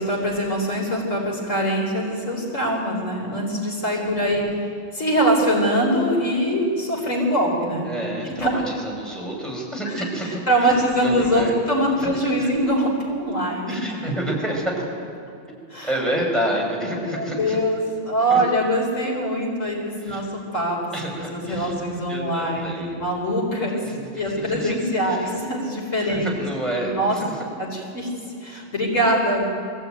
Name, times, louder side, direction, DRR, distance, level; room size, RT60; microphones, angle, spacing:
voice 1, 0.0-4.6 4.9-7.9 8.3-8.5 10.0-13.8 15.7-15.9 17.0-20.3 20.5-23.8 24.1-26.3 26.7-27.1 27.6-28.1 28.4-29.5, equal, 85° left, -1 dB, 4.7 m, -23 dB
voice 2, 3.9-4.2 7.9-10.7 11.0-11.5 12.0-12.1 12.4-12.5 13.7-14.9 15.5-15.6 15.8-17.6 18.3-18.4 20.0-20.3 20.9-21.7 22.1-23.0 23.8-24.0 24.4-24.7 25.0-25.3 26.0-27.4, right 1 dB, ahead, -2 dB, 5.7 m, -29 dB
23.5 x 16.0 x 9.2 m, 2.6 s
omnidirectional pair, 1.3 m